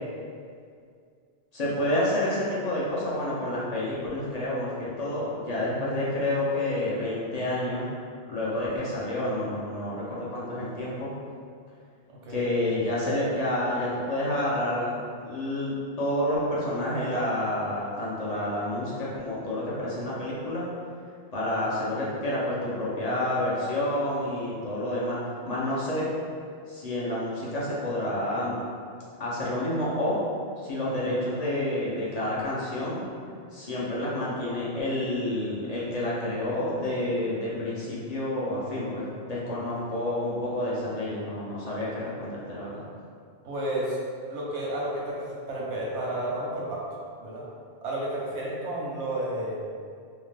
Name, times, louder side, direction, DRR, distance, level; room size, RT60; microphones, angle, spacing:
voice 1, 1.5-7.9 8.3-11.1 12.3-20.7 21.3-25.2 25.5-26.1 26.7-28.6 29.2-30.2 30.6-33.0 33.5-42.8, left 1 dB, 50° left, -7 dB, 0.5 m, -29 dB
voice 2, 12.1-12.4 43.4-44.0 44.3-46.8 47.2-47.4 47.8-49.6, right 1 dB, 85° right, -4 dB, 1.0 m, -31 dB
2.8 x 2.0 x 3.2 m, 2.2 s
omnidirectional pair, 1.1 m